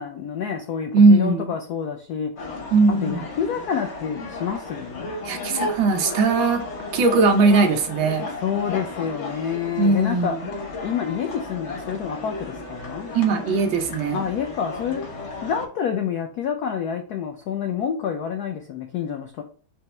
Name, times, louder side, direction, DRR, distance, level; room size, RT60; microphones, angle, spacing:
voice 1, 0.0-2.3 2.9-5.1 8.4-10.3 10.8-13.1 14.1-19.4, left 7 dB, 85° left, 4 dB, 0.8 m, -28 dB
voice 2, 0.9-1.5 2.7-3.2 5.2-6.6 6.9-8.3 9.8-10.4 13.1-14.2, right 3 dB, 75° right, 5 dB, 1.5 m, -19 dB
sound 1, 2.4-15.7, left 2 dB, 50° left, 0.8 m, -34 dB
5.5 x 2.0 x 4.2 m, 0.40 s
omnidirectional pair, 2.3 m